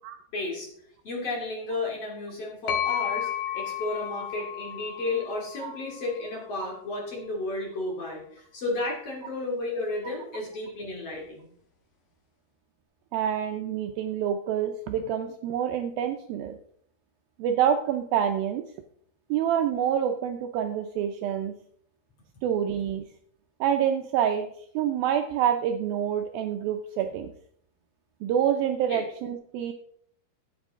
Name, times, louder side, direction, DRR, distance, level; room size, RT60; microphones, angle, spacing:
voice 1, 0.3-0.7 1.0-3.3 3.5-11.5 28.9-29.0, left 2 dB, 40° left, -1 dB, 3.1 m, -33 dB
sound 1, 2.7-6.4, left 10 dB, 65° left, 2.8 m, -33 dB
voice 2, 13.1-16.6 17.4-18.6 19.3-21.6 22.4-23.1 23.6-24.5 24.8-27.3 28.2-29.7, right 9 dB, 80° right, 6 dB, 2.2 m, -27 dB
12.5 x 9.2 x 3.6 m, 0.65 s
omnidirectional pair, 4.7 m